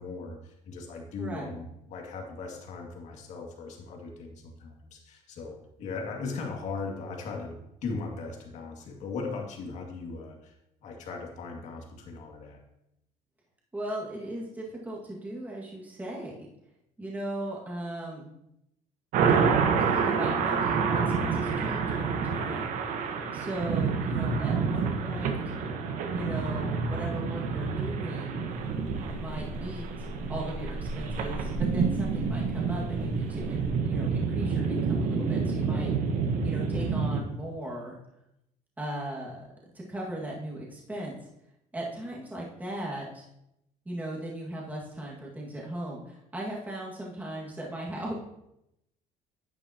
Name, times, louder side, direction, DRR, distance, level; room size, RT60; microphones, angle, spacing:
voice 1, 0.0-10.6 10.8-12.6, left 4 dB, 55° left, 1 dB, 2.2 m, -38 dB
voice 2, 1.2-1.6 13.7-16.4 17.0-18.4 19.8-20.8 21.2-22.6 23.0-25.4 26.1-28.5 29.2-35.9 36.4-37.9 38.8-39.5 39.7-41.2 41.7-43.3 43.9-48.2, right 1 dB, 10° right, -4 dB, 1.9 m, -37 dB
sound 1, 19.1-37.2, right 5 dB, 65° right, 1.2 m, -28 dB
sound 2, 28.5-33.7, equal, 20° left, 1.7 m, -40 dB
11.0 x 8.8 x 2.9 m, 0.83 s
cardioid pair, 130°, 14 cm